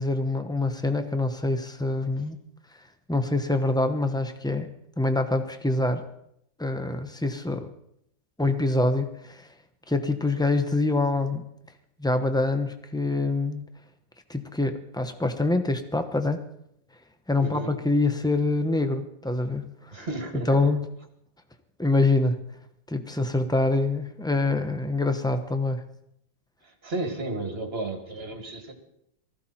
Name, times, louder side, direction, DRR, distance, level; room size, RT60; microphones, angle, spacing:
voice 1, 0.0-2.4 3.1-6.0 6.6-7.7 8.4-9.5 9.9-11.5 12.0-13.7 14.3-16.4 17.3-20.1 20.5-20.9 21.8-22.4 22.9-25.8, left 2 dB, 5° left, 8 dB, 0.4 m, -25 dB
voice 2, 17.4-17.7 19.9-20.6 26.8-28.7, right 2 dB, 30° right, 3 dB, 2.6 m, -33 dB
19.5 x 15.0 x 4.4 m, 0.75 s
omnidirectional pair, 2.1 m